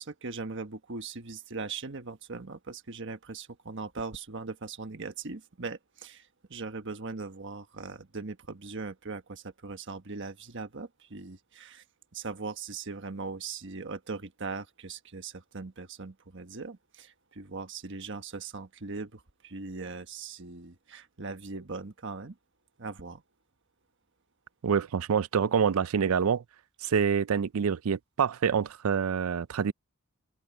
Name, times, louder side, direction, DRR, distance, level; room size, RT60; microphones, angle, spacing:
voice 1, 0.0-11.8 12.1-22.4 22.8-23.2, right 4 dB, 60° right, 1.3 m, -40 dB
voice 2, 24.6-26.4 26.8-29.7, right 6 dB, 85° right, 0.4 m, -26 dB
open air
head